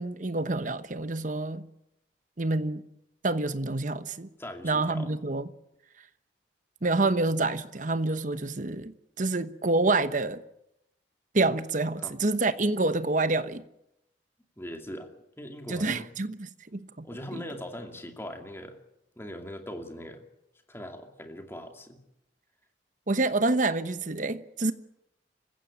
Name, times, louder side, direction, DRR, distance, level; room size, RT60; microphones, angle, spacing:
voice 1, 0.0-1.7 2.4-2.9 3.2-4.3 4.6-5.5 6.8-10.4 11.3-13.6 15.7-16.4 16.7-17.1 17.3-17.4 23.1-24.7, right 2 dB, 45° right, 1.0 m, -27 dB
voice 2, 4.4-5.1 12.0-12.1 14.6-16.1 17.0-18.8 19.2-20.2 20.7-22.0, equal, 15° left, 2.5 m, -40 dB
26.0 x 15.5 x 8.7 m
head